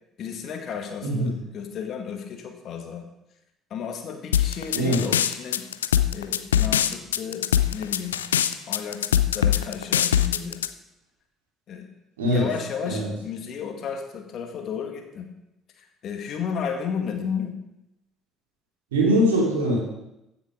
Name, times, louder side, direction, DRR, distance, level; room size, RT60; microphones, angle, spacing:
voice 1, 0.2-3.1 3.7-5.7 6.1-8.2 8.7-10.7 11.7-11.9 12.2-15.3 15.8-17.6, left 7 dB, 50° left, 4 dB, 2.0 m, -33 dB
voice 2, 1.0-1.3 4.7-5.0 12.2-12.5 12.8-13.1 18.9-19.8, equal, 75° right, -3 dB, 2.8 m, -22 dB
sound 1, 4.3-10.7, left 10 dB, 75° left, 0.4 m, -22 dB
15.0 x 7.2 x 5.1 m, 0.88 s
figure-of-eight pair, 50°, 0 cm